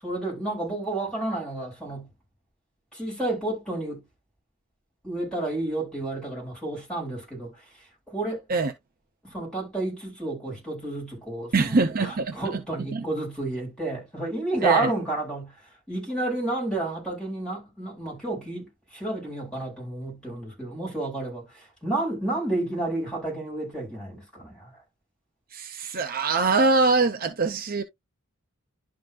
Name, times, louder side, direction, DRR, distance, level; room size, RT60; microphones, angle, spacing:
voice 1, 0.0-2.1 2.9-4.0 5.0-8.4 9.2-15.5 15.9-24.8, right 2 dB, 5° left, 5.6 m, -31 dB
voice 2, 11.5-12.4 12.9-13.0 14.6-14.9 25.5-27.8, right 3 dB, 40° right, 0.7 m, -23 dB
11.5 x 3.8 x 2.4 m
head